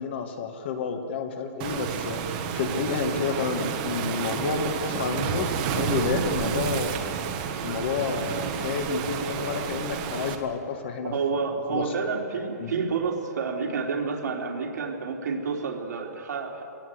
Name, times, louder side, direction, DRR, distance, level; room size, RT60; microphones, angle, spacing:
voice 1, 0.0-7.0 7.6-11.1 11.7-11.9 12.6-12.7, left 5 dB, 40° left, 6 dB, 1.7 m, -30 dB
Waves surf, 1.6-10.3, right 7 dB, 25° right, 1.3 m, -30 dB
voice 2, 11.1-16.6, right 5 dB, 80° right, 1 dB, 3.4 m, -29 dB
22.5 x 18.0 x 8.0 m, 2.5 s
hypercardioid pair, 180°, 9 cm